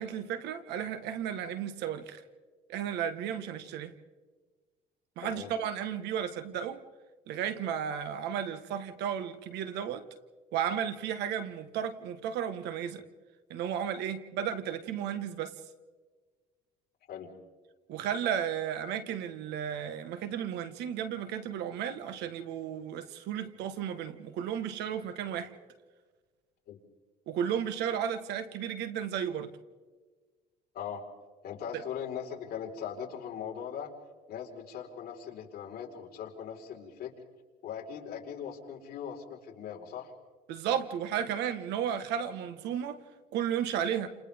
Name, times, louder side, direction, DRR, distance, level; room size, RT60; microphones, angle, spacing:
voice 1, 0.0-2.2 2.7-3.9 5.2-6.8 7.3-10.0 10.5-13.0 13.5-15.5 17.9-25.5 27.3-29.5 31.7-31.8 40.5-43.0 43.3-44.1, right 9 dB, 85° right, 11 dB, 1.5 m, -33 dB
voice 2, 5.2-5.5 17.1-17.3 26.7-26.8 30.7-31.0 31.4-33.9 34.3-37.1 37.6-40.1, left 8 dB, 65° left, -2 dB, 4.7 m, -40 dB
29.5 x 28.0 x 3.6 m, 1.4 s
cardioid pair, 110°, 17 cm